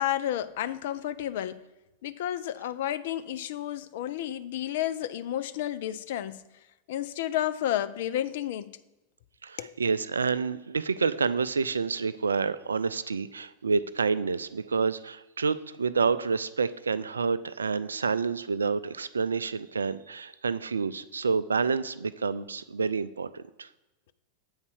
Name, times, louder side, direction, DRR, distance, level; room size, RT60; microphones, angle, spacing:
voice 1, 0.0-1.6 2.0-6.4 6.9-8.8 9.6-9.7, left 12 dB, 60° left, 0.4 m, -31 dB
voice 2, 9.4-23.7, right 5 dB, 80° right, 0.3 m, -28 dB
8.0 x 4.2 x 6.2 m
figure-of-eight pair, 90°, 0 cm